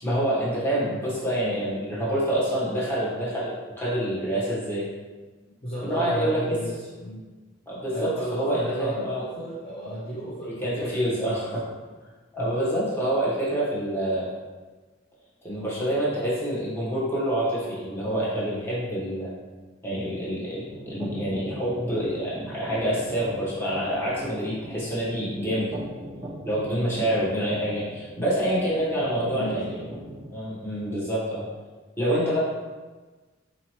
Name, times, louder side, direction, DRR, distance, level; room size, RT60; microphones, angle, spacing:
voice 1, 0.0-4.9 5.8-6.6 7.7-9.2 10.4-11.6 12.3-14.3 15.4-19.3 19.8-25.7 26.5-29.6 30.3-31.4 32.0-32.4, right 1 dB, 10° left, -9 dB, 1.1 m, -27 dB
voice 2, 5.6-7.2 7.9-11.3 12.4-12.5 26.6-26.8 29.1-29.9 30.7-30.9, right 1 dB, 30° left, -10 dB, 0.7 m, -34 dB
sound 1, 20.7-30.3, right 1 dB, 30° right, 0.9 m, -40 dB
4.0 x 2.9 x 2.9 m, 1.3 s
head